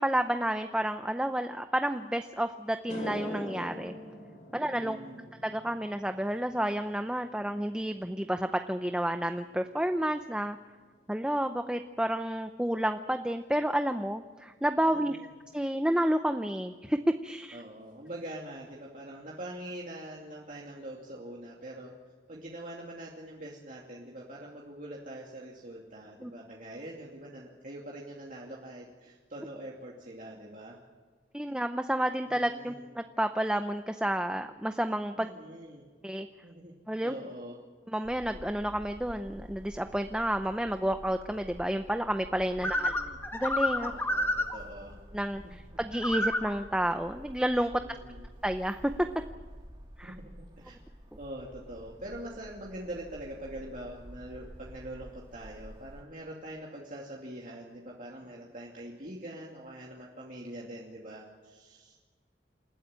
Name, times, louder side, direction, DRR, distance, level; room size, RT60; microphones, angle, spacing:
voice 1, 0.0-3.9 4.5-5.0 5.4-10.6 11.1-15.2 15.5-17.6 26.2-26.3 31.3-35.3 36.0-36.3 36.9-37.1 37.9-42.9 43.3-43.9 45.1-45.4 45.8-47.8 48.4-48.8 50.0-50.1, right 1 dB, 5° right, 7 dB, 0.6 m, -30 dB
sound 1, 2.2-2.3 2.7-11.2 11.5-11.9 15.5-15.6 17.3-17.4 17.7-17.8 18.1-18.6, left 1 dB, 45° left, 5.9 m, -46 dB
voice 2, 4.5-5.3 14.9-15.3 17.5-21.9 22.3-30.8 32.2-32.9 35.1-35.9 36.4-36.7 37.0-37.6 42.6-43.2 43.8-45.0 45.7-45.8 47.7-48.3 50.0-50.8 51.2-62.2, right 1 dB, 50° right, -3 dB, 2.6 m, -44 dB
sound 2, 38.0-56.0, equal, 30° right, 2.3 m, -49 dB
sound 3, 42.6-44.6 45.9-46.5, left 1 dB, 15° left, 1.8 m, -29 dB
28.5 x 13.5 x 9.0 m, 1.5 s
head